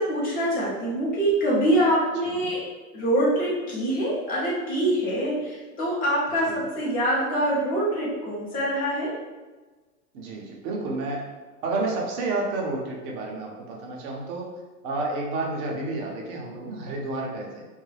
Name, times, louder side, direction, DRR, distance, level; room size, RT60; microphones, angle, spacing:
voice 1, 0.0-2.6 2.9-9.1, right 1 dB, 20° left, -6 dB, 0.7 m, -24 dB
voice 2, 10.1-11.3 11.6-14.5 14.8-17.7, right 2 dB, 35° right, -1 dB, 0.5 m, -30 dB
2.3 x 2.2 x 3.2 m, 1.3 s
hypercardioid pair, 135°, 46 cm